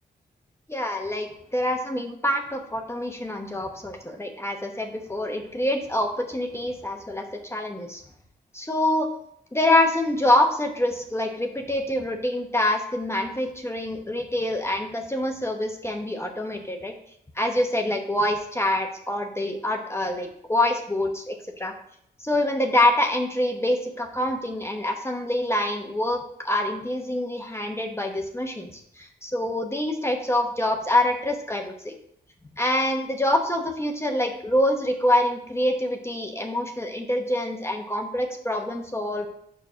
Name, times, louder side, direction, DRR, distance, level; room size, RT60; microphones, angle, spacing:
voice 1, 0.7-8.0 8.5-9.1 9.5-16.9 17.4-21.7 22.2-31.9 32.6-39.3, left 1 dB, 15° left, 3 dB, 0.9 m, -25 dB
5.3 x 4.7 x 6.1 m, 0.72 s
cardioid pair, 80°, 18 cm